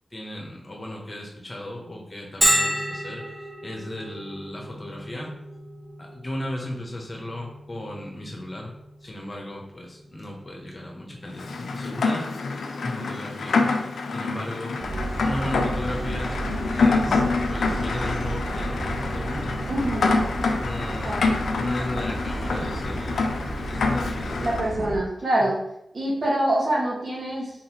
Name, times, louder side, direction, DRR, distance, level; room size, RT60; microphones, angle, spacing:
voice 1, 0.1-5.3 6.0-8.7 9.0-12.4 12.8-13.6 14.1-14.8 15.2-16.4 16.7-20.1 20.6-21.2 21.6-23.3 23.7-24.4, left 1 dB, 35° left, 0 dB, 1.2 m, -35 dB
Bell, 2.4-17.8, equal, 15° right, 0.8 m, -34 dB
Rain, 11.4-24.7, left 3 dB, 90° left, 0.5 m, -26 dB
sound 1, 14.8-25.0, right 1 dB, 45° right, 0.9 m, -32 dB
voice 2, 19.7-20.1 21.0-21.3 24.3-25.6 25.9-27.5, right 1 dB, 60° right, -5 dB, 1.7 m, -25 dB
4.2 x 3.9 x 3.1 m, 0.81 s
cardioid pair, 55°, 0 cm